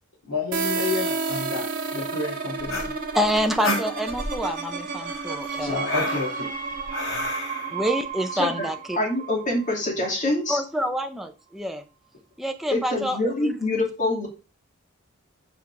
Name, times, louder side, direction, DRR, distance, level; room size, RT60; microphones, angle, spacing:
voice 1, 0.3-1.7 1.9-2.8 5.6-6.5, left 3 dB, 90° left, 3.1 m, -30 dB
sound 1, 0.5-10.1, right 4 dB, 40° right, 1.6 m, -31 dB
sound 2, 2.6-4.4 5.0-7.7, left 1 dB, 65° left, 2.9 m, -31 dB
voice 2, 3.1-5.9 7.7-9.0 10.5-11.8 12.4-13.5, equal, ahead, 0.5 m, -27 dB
voice 3, 8.3-8.7 9.0-10.6 12.7-14.3, left 2 dB, 35° left, 2.4 m, -25 dB
7.3 x 4.4 x 4.7 m
head